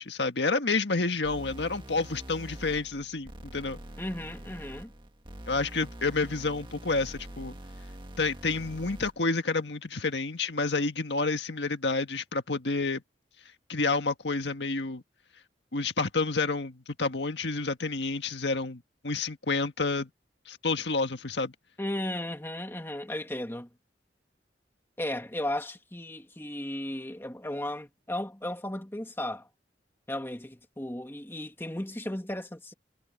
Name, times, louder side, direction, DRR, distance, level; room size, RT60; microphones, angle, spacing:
voice 1, 0.0-3.8 5.5-7.6 8.2-13.0 13.7-15.0 15.7-20.1 20.5-21.5, left 3 dB, 80° left, 1.7 m, -29 dB
sound 1, 1.2-9.2, right 1 dB, 30° right, 1.9 m, -44 dB
voice 2, 4.0-4.9 21.8-23.7 25.0-29.5 30.1-32.7, left 1 dB, 15° left, 2.0 m, -35 dB
head